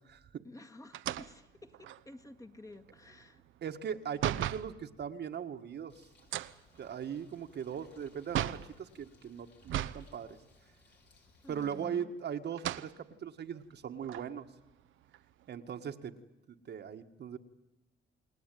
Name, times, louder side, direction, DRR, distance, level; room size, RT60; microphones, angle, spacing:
voice 1, 0.4-3.4 11.4-12.1, left 2 dB, 15° left, 2.0 m, -52 dB
sound 1, 0.9-4.7 6.2-8.8 9.6-10.1 10.4-10.5 11.6-12.1 12.5-12.9 13.6-13.7 14.0-15.4, right 12 dB, 80° right, 0.9 m, -37 dB
voice 2, 3.6-6.1 6.8-10.4 11.5-14.5 15.5-16.1 16.5-17.4, right 8 dB, 60° right, 1.6 m, -39 dB
Bird, 5.9-11.7, left 4 dB, 60° left, 5.4 m, -64 dB
29.5 x 19.0 x 9.2 m
cardioid pair, 90°, 20 cm